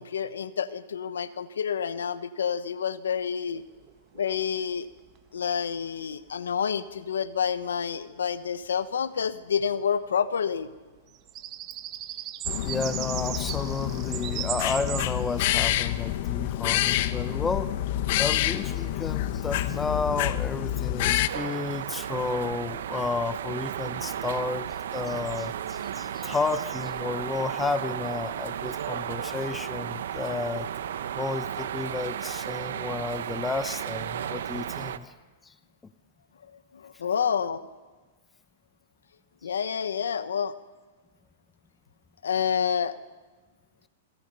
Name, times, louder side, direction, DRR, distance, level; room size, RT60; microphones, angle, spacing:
voice 1, 0.0-3.6 4.1-4.9 5.3-10.7 36.7-37.6 39.4-40.5 42.2-43.0, left 7 dB, 90° left, 14 dB, 1.1 m, -28 dB
sound 1, 3.8-4.9 5.2-5.3 11.0-15.5, right 13 dB, 35° right, 1.4 m, -37 dB
sound 2, 12.4-21.3, left 13 dB, 55° left, 1.1 m, -28 dB
voice 2, 12.6-17.7 18.2-30.7 31.1-35.1, left 4 dB, 10° left, 12 dB, 1.0 m, -32 dB
sound 3, 21.3-35.0, right 9 dB, 75° right, 1.1 m, -34 dB
28.5 x 21.5 x 5.6 m, 1.3 s
hypercardioid pair, 130°, 0 cm